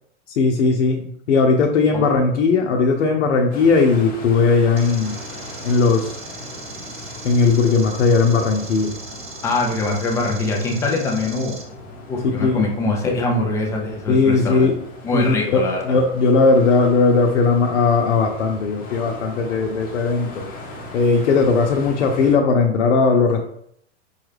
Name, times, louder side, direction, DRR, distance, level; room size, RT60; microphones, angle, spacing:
voice 1, 0.3-5.2 5.6-6.2 7.2-8.9 12.4-12.7 14.1-14.8 15.1-20.5 20.9-23.4, left 4 dB, 80° left, 1 dB, 0.7 m, -18 dB
sound 1, 3.5-22.4, left 2 dB, 25° left, 0.7 m, -38 dB
sound 2, 4.8-11.6, right 3 dB, 20° right, 0.9 m, -39 dB
voice 2, 9.4-11.6 12.1-14.7 15.0-16.0, left 2 dB, 10° left, 1 dB, 0.3 m, -23 dB
5.4 x 2.4 x 3.2 m, 0.71 s
hypercardioid pair, 135°, 35 cm